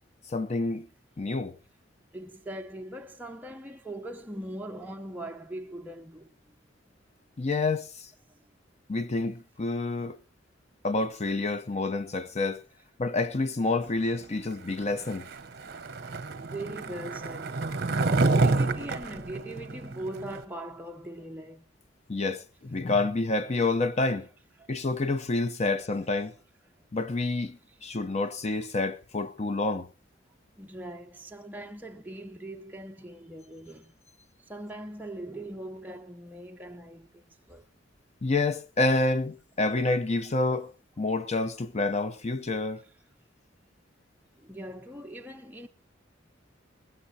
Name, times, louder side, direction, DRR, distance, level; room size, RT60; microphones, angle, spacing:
voice 1, 0.3-0.9 1.2-1.6 7.4-8.1 8.9-10.2 10.8-12.6 13.0-15.3 22.1-24.3 24.7-26.3 26.9-29.9 38.2-40.7 41.0-42.8, left 3 dB, 35° left, 0.6 m, -28 dB
voice 2, 2.1-6.3 8.4-8.5 16.5-17.5 18.0-21.7 24.6-24.7 30.6-34.0 34.5-37.7 44.4-45.7, right 1 dB, 10° right, 0.7 m, -41 dB
Skateboard, 15.0-20.4, right 3 dB, 55° right, 0.8 m, -28 dB
19.0 x 15.5 x 2.7 m
head